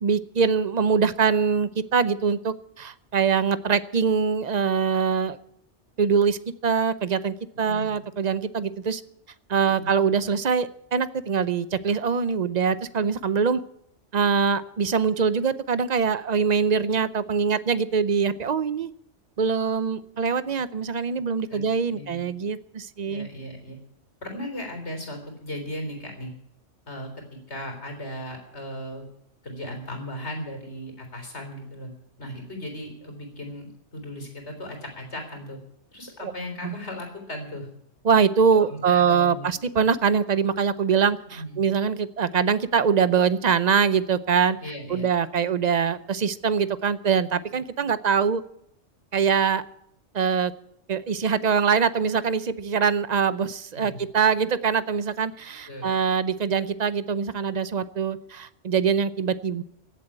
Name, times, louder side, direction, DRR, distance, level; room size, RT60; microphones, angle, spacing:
voice 1, 0.0-5.4 6.0-9.0 9.5-13.6 14.1-18.9 19.4-23.3 36.2-36.3 36.6-36.8 38.0-44.6 44.9-48.4 49.1-49.6 50.1-50.5 50.9-59.6, right 6 dB, 40° right, 14 dB, 0.7 m, -23 dB
voice 2, 7.6-7.9 9.8-9.9 21.5-21.6 21.9-22.2 23.0-23.8 24.2-26.3 26.9-27.1 27.5-29.0 29.4-31.9 32.2-35.6 35.9-37.7 38.5-39.5 41.4-41.6 44.6-45.1 53.7-54.1 55.7-55.9, left 1 dB, 65° left, 4 dB, 3.9 m, -37 dB
16.0 x 7.9 x 8.8 m, 0.74 s
omnidirectional pair, 1.2 m